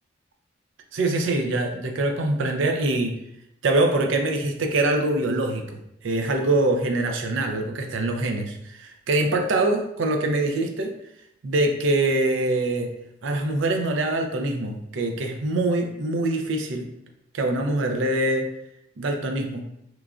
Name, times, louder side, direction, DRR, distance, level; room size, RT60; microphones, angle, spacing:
voice 1, 0.9-3.2 3.6-10.9 11.4-12.9 13.2-16.9 17.3-18.4 19.0-19.6, right 2 dB, 70° right, 4 dB, 0.4 m, -24 dB
3.0 x 2.4 x 2.3 m, 0.79 s
head